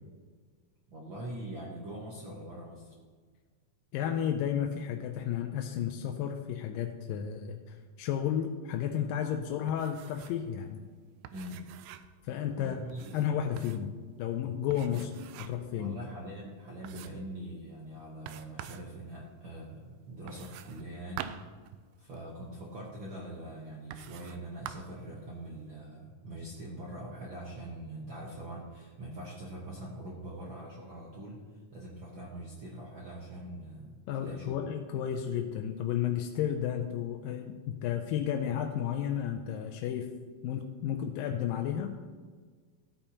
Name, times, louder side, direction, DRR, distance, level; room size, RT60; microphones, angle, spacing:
voice 1, 0.9-3.0 11.3-11.7 12.6-13.3 14.9-15.0 15.7-21.3 22.0-31.4 31.7-34.6, right 1 dB, 70° right, -3 dB, 1.2 m, -43 dB
voice 2, 3.9-10.8 12.2-12.8 13.1-13.9 14.2-15.1 15.4-16.0 34.1-40.1 40.4-41.9, left 9 dB, 90° left, 4 dB, 2.3 m, -32 dB
sound 1, 9.7-10.5 10.7-10.8 11.2-12.2 12.9-13.9 14.7-15.7 16.2-16.3 16.8-17.3 18.3-18.9 20.3-22.3 23.1-23.2 23.9-24.4 24.7-25.0, right 11 dB, 85° right, 2.3 m, -46 dB
14.5 x 8.7 x 2.9 m, 1.5 s
omnidirectional pair, 4.0 m